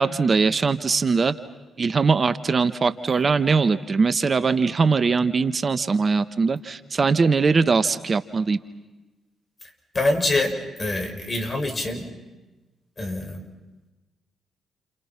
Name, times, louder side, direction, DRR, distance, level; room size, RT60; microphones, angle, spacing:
voice 1, 0.0-1.3 1.8-8.6, right 4 dB, 45° right, 12 dB, 1.3 m, -21 dB
voice 2, 9.9-10.5 10.8-12.1 13.0-13.5, left 2 dB, 35° left, 4 dB, 6.6 m, -25 dB
30.0 x 29.5 x 6.0 m, 1.1 s
hypercardioid pair, 45°, 0 cm